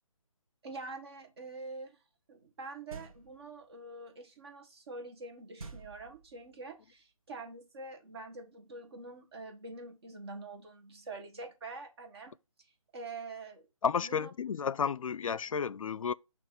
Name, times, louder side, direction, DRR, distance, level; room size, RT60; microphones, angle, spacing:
voice 1, 0.6-2.0 2.3-12.4 12.9-13.6 14.0-14.3, right 3 dB, 50° right, 1.6 m, -45 dB
sound 1, 2.9-3.5 5.6-6.6, right 3 dB, 80° right, 1.2 m, -48 dB
voice 2, 13.8-16.1, left 6 dB, 75° left, 0.4 m, -32 dB
6.4 x 3.0 x 5.8 m
figure-of-eight pair, 155°, 18 cm